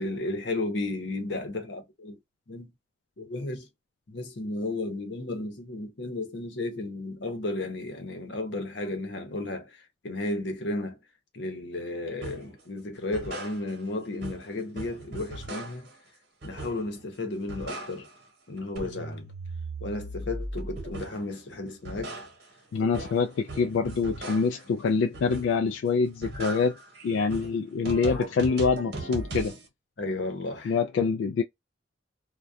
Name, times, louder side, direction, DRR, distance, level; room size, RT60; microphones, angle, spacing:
voice 1, 0.0-2.2 2.5-2.7 3.2-3.7 4.1-11.0 11.3-15.9 16.4-18.1 18.5-19.3 19.8-22.2 24.7-24.8 27.2-27.3 28.0-28.2 30.0-30.7, left 2 dB, 65° left, 0.8 m, -33 dB
sound 1, 12.2-12.5 12.9-13.9 14.2-16.0 16.4-17.0 17.3-18.3 18.6-21.3 21.7-24.7 25.1-25.7 26.0-29.7, right 2 dB, 55° right, 1.0 m, -38 dB
voice 2, 22.7-26.8 27.0-29.6 30.6-31.4, left 5 dB, 85° left, 0.3 m, -25 dB
2.3 x 2.2 x 2.5 m
head